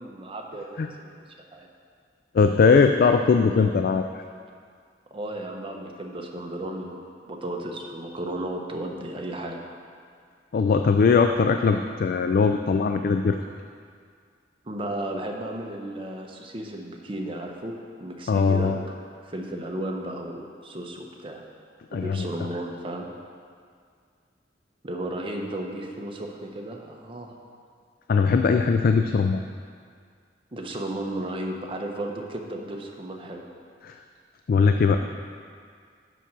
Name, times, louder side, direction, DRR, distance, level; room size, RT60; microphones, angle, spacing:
voice 1, 0.0-1.7 5.1-9.6 14.6-17.7 18.0-19.0 19.2-21.4 21.9-23.1 24.8-27.3 30.5-33.4, right 1 dB, 30° right, 1 dB, 0.9 m, -34 dB
voice 2, 2.3-4.2 10.5-13.4 18.3-18.8 21.9-22.3 28.1-29.4 33.8-34.0 34.5-35.0, left 5 dB, 55° left, 6 dB, 0.3 m, -20 dB
6.8 x 6.2 x 6.0 m, 2.1 s
head